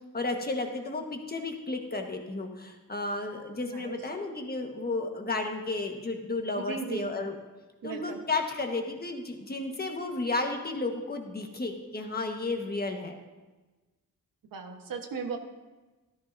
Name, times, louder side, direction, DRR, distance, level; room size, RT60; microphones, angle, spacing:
voice 1, 0.1-7.4 7.8-13.1, left 3 dB, 30° left, 3 dB, 1.4 m, -33 dB
voice 2, 3.7-4.0 6.7-7.1 7.8-8.2 14.5-15.4, right 5 dB, 90° right, 4 dB, 1.3 m, -36 dB
13.5 x 12.5 x 2.7 m, 1.2 s
cardioid pair, 95°, 33 cm